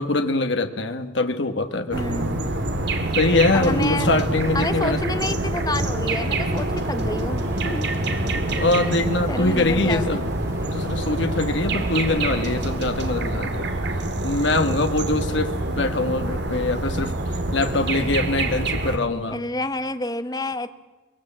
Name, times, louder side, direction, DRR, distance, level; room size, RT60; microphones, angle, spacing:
voice 1, 0.0-2.0 3.1-5.0 8.3-10.2 10.7-13.7 14.2-17.2 17.5-19.4, left 2 dB, 65° left, 7 dB, 1.4 m, -23 dB
voice 2, 1.9-2.5 3.5-4.1 4.5-7.9 9.3-10.2 19.3-20.7, left 2 dB, 20° left, 10 dB, 0.9 m, -29 dB
sound 1, 1.9-19.0, right 2 dB, 60° right, 2.0 m, -26 dB
sound 2, 4.2-14.5 15.3-15.4 16.1-16.2 16.8-16.9, right 2 dB, 15° right, 2.1 m, -41 dB
23.5 x 20.5 x 7.5 m, 1.2 s
head